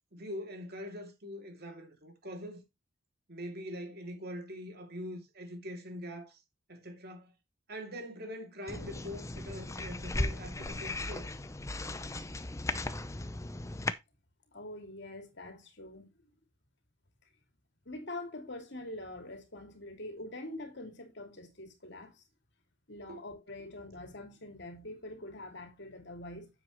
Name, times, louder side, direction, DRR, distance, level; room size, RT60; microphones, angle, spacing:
voice 1, 0.1-2.6 3.3-6.4 6.7-7.3 7.7-11.3 23.1-23.2, equal, 50° right, 2.7 m, -43 dB
sound 1, 8.7-13.9, left 2 dB, 15° left, 0.6 m, -37 dB
voice 2, 14.5-16.1 17.8-22.2 22.9-26.5, left 1 dB, 55° left, 2.6 m, -44 dB
9.4 x 7.6 x 3.1 m
head